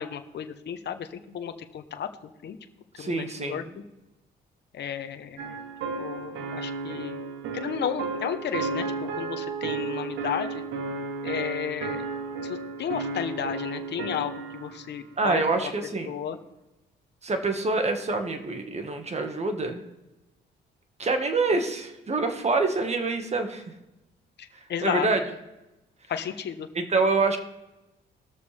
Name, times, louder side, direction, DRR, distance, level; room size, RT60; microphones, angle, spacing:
voice 1, 0.0-2.6 3.0-3.6 4.7-5.6 6.0-7.2 7.5-8.9 9.2-10.6 11.2-12.0 12.4-15.7 16.1-16.4 24.4-25.1 26.1-26.7, left 8 dB, 60° left, 8 dB, 1.0 m, -33 dB
voice 2, 3.0-3.7 15.2-16.1 17.2-19.8 21.0-23.6 24.5-25.2 26.8-27.4, right 3 dB, 35° right, 6 dB, 1.7 m, -26 dB
sound 1, 5.4-14.8, right 4 dB, 85° right, 1.3 m, -33 dB
20.0 x 6.8 x 3.4 m, 0.99 s
cardioid pair, 90°, 20 cm